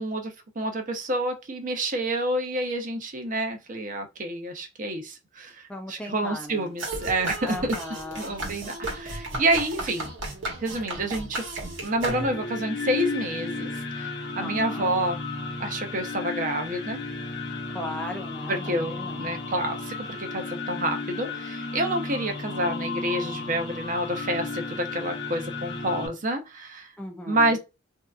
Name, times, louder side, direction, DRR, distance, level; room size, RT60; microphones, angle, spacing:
voice 1, 0.0-7.8 8.2-10.1 10.6-15.2 15.6-17.0 18.5-26.9 27.3-27.6, right 1 dB, 45° right, 0.7 m, -28 dB
voice 2, 5.7-6.8 7.4-8.4 14.4-15.0 17.7-19.2 27.0-27.6, left 1 dB, 5° left, 0.4 m, -37 dB
sound 1, 6.8-12.6, right 2 dB, 85° right, 1.2 m, -34 dB
sound 2, 11.8-26.1, left 3 dB, 60° left, 0.8 m, -34 dB
3.3 x 2.7 x 2.4 m
head